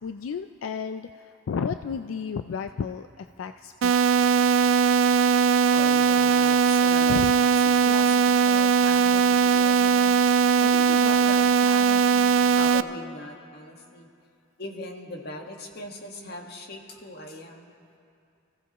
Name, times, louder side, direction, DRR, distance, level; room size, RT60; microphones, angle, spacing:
voice 1, 0.0-4.0 7.1-7.3, left 6 dB, 85° left, 9 dB, 0.4 m, -32 dB
sound 1, 3.8-12.8, right 6 dB, 70° right, 0.4 m, -20 dB
voice 2, 5.7-7.5 7.8-10.1 10.6-14.1 14.6-17.7, left 1 dB, 55° left, 2 dB, 1.6 m, -39 dB
28.5 x 15.5 x 3.0 m, 2.5 s
head